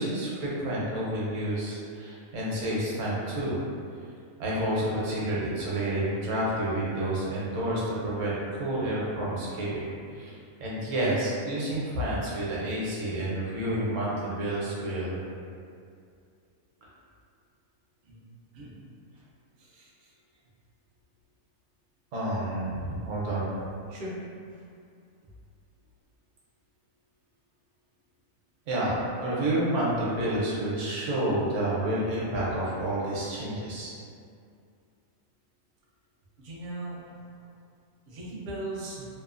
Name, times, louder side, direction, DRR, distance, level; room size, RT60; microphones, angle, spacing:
voice 1, 0.0-3.6 4.4-15.2 22.1-23.6 28.7-33.9, right 1 dB, 65° right, -6 dB, 1.0 m, -29 dB
voice 2, 19.6-20.1 23.9-24.1 36.4-37.0 38.1-39.1, right 1 dB, 85° right, -6 dB, 0.4 m, -38 dB
2.9 x 2.0 x 2.4 m, 2.4 s
omnidirectional pair, 1.5 m